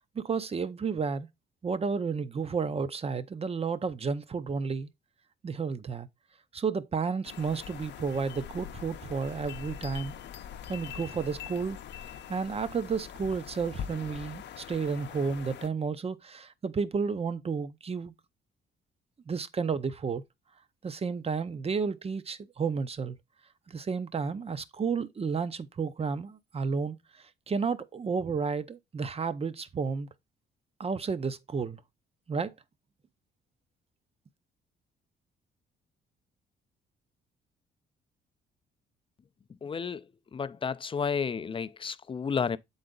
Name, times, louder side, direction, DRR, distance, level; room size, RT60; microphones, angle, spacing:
voice 1, 0.1-1.3 1.6-4.9 5.4-6.1 6.5-10.1 10.7-11.8 12.3-18.1 19.3-20.2 20.8-23.2 23.7-27.0 27.5-30.1 30.8-31.8 32.3-32.5, right 5 dB, 30° right, 0.6 m, -32 dB
sound 1, 7.2-15.7, left 9 dB, 65° left, 0.6 m, -43 dB
voice 2, 39.6-40.0 40.3-42.6, left 6 dB, 25° left, 0.4 m, -31 dB
7.7 x 4.0 x 3.7 m
cardioid pair, 90°, 20 cm